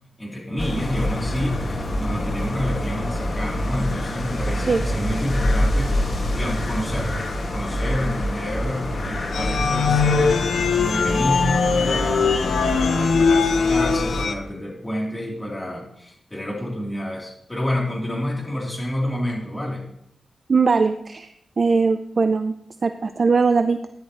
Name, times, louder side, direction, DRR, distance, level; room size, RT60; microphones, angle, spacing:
voice 1, 0.2-7.1 7.5-10.4 10.7-19.8, left 1 dB, 15° left, -4 dB, 3.4 m, -29 dB
sound 1, 0.6-14.3, left 1 dB, 50° left, 2.1 m, -26 dB
sound 2, 9.3-14.3, left 5 dB, 85° left, 0.8 m, -21 dB
voice 2, 20.5-21.3 21.6-22.5 22.8-23.8, right 4 dB, 45° right, 8 dB, 0.5 m, -20 dB
13.5 x 10.5 x 3.2 m, 0.73 s
wide cardioid pair, 150°, 0 cm